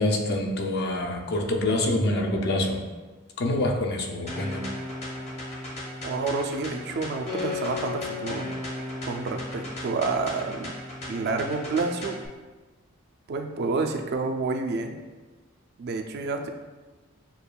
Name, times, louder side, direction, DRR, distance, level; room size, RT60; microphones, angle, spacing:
voice 1, 0.0-2.8 3.4-4.6, left 1 dB, 50° left, 2 dB, 0.5 m, -26 dB
sound 1, 4.3-12.3, left 2 dB, 30° left, 0.9 m, -35 dB
voice 2, 6.0-8.4 9.1-10.7 11.1-12.2 13.3-15.0 15.8-16.5, right 3 dB, 50° right, 4 dB, 0.3 m, -29 dB
6.8 x 2.4 x 2.2 m, 1.3 s
head